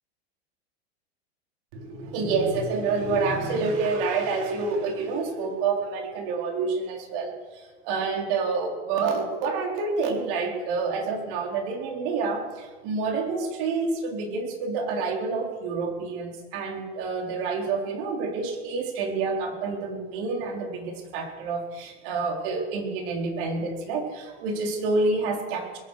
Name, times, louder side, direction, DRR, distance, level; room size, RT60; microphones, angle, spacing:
voice 1, 1.7-25.8, right 4 dB, 60° right, 1 dB, 4.1 m, -28 dB
21.5 x 9.2 x 6.6 m, 1.4 s
hypercardioid pair, 115°, 32 cm